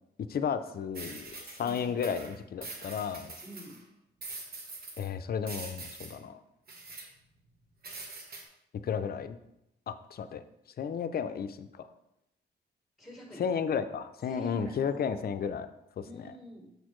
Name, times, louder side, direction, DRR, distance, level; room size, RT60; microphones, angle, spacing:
voice 1, 0.3-3.3 5.0-6.4 8.8-9.4 9.9-10.4 10.8-11.9 13.4-15.7 16.0-16.3, left 7 dB, 60° left, 10 dB, 0.5 m, -33 dB
sound 1, 0.9-3.8 4.2-5.1 5.4-6.2 6.7-7.1 7.8-8.4, right 3 dB, 60° right, 1.2 m, -44 dB
voice 2, 1.6-2.0 3.4-3.8 13.0-13.4 14.3-15.2 16.0-16.7, equal, ahead, -2 dB, 1.8 m, -46 dB
6.8 x 6.3 x 3.1 m, 0.83 s
cardioid pair, 110°, 18 cm